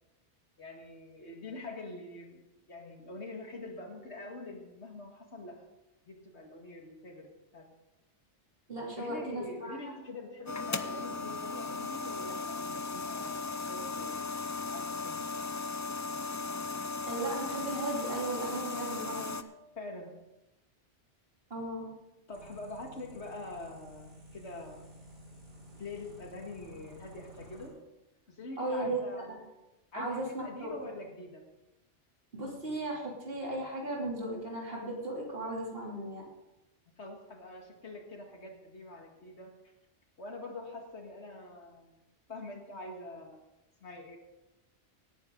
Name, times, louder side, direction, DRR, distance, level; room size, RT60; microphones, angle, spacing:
voice 1, 0.6-2.4 2.7-5.7 6.1-7.7 9.0-15.3 19.8-20.2 22.3-24.9 25.8-27.8 28.3-29.4 29.9-31.5 37.0-39.6 40.2-42.0 42.3-43.4 43.8-44.2, left 2 dB, 70° left, 2 dB, 2.3 m, -45 dB
voice 2, 8.7-9.9 17.1-19.4 21.5-21.9 28.6-29.0 29.3-29.4 29.9-30.7 32.3-36.2, right 2 dB, 55° right, -3 dB, 3.4 m, -36 dB
sound 1, 10.5-19.4, left 3 dB, 30° left, 0.3 m, -37 dB
sound 2, 22.3-27.7, equal, 80° right, 5.5 m, -52 dB
17.5 x 10.0 x 3.9 m, 0.96 s
omnidirectional pair, 1.2 m